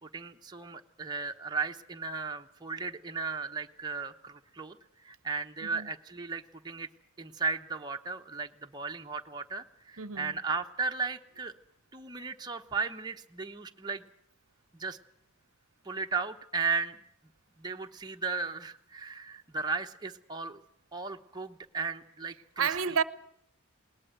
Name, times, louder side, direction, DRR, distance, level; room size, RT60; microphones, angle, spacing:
voice 1, 0.0-4.8 5.0-6.9 7.2-11.5 11.9-14.0 14.8-15.0 15.8-17.0 17.6-20.6 20.9-22.7, right 4 dB, 20° right, 0.9 m, -35 dB
voice 2, 10.0-10.4 22.6-23.0, right 6 dB, 70° right, 0.8 m, -30 dB
20.5 x 19.0 x 7.9 m
head